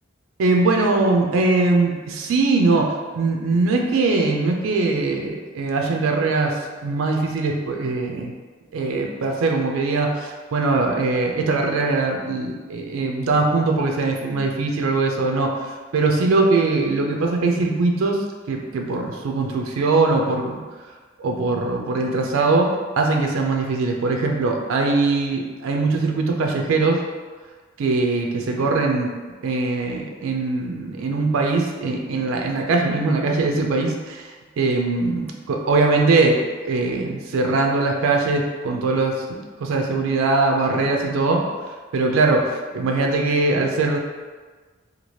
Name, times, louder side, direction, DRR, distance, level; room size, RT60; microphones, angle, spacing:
voice 1, 0.4-8.3 8.7-20.6 21.2-22.7 23.0-27.0 27.8-29.1 29.4-39.2 39.6-41.4 41.9-44.0, right 3 dB, 85° right, 2 dB, 0.4 m, -21 dB
2.8 x 2.3 x 3.0 m, 1.4 s
head